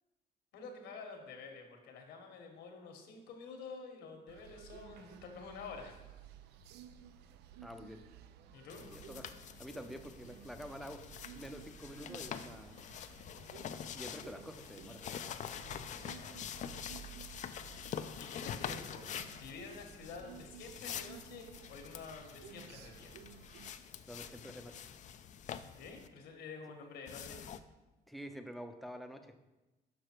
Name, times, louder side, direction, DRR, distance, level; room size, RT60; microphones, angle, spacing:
voice 1, 0.5-6.0 8.5-8.8 15.7-16.3 18.2-19.1 19.4-23.1 25.6-27.4, left 4 dB, 80° left, 3 dB, 1.5 m, -49 dB
sound 1, 4.3-23.7, right 9 dB, 80° right, 0.4 m, -56 dB
sound 2, 4.4-6.5 9.9-12.1 15.5-17.5, right 12 dB, 30° right, 1.0 m, -58 dB
voice 2, 7.6-8.0 8.9-9.3 9.6-11.0 11.3-12.8 13.9-15.0 24.1-24.7 28.1-29.3, equal, ahead, 7 dB, 0.6 m, -47 dB
sound 3, 8.7-26.1 27.1-27.6, left 8 dB, 45° left, 0.4 m, -46 dB
6.7 x 5.5 x 4.5 m, 1.1 s
cardioid pair, 110°, 17 cm